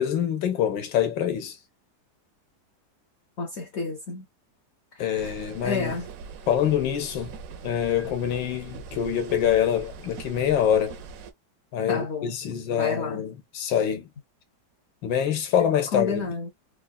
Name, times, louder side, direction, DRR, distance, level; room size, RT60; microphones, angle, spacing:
voice 1, 0.0-1.6 5.0-6.0 6.5-7.4 7.6-11.0 11.7-14.1 15.0-16.3, left 9 dB, 85° left, 1.5 m, -25 dB
voice 2, 3.4-4.2 4.9-5.3 5.6-6.1 11.9-12.3 12.7-13.2 15.9-16.5, left 4 dB, 65° left, 0.6 m, -30 dB
sound 1, 5.2-11.3, right 5 dB, 65° right, 0.9 m, -41 dB
3.6 x 2.5 x 2.2 m
omnidirectional pair, 1.9 m